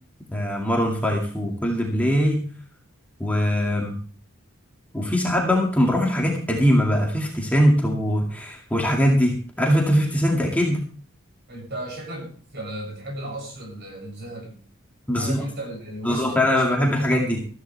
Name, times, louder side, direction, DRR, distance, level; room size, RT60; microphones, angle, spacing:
voice 1, 0.3-2.4 3.2-3.9 4.9-10.8 15.1-15.4 16.0-17.4, equal, 5° left, -1 dB, 2.2 m, -21 dB
voice 2, 11.5-14.6 15.1-17.4, right 1 dB, 50° right, 1 dB, 7.6 m, -35 dB
14.5 x 14.0 x 3.4 m, 0.43 s
head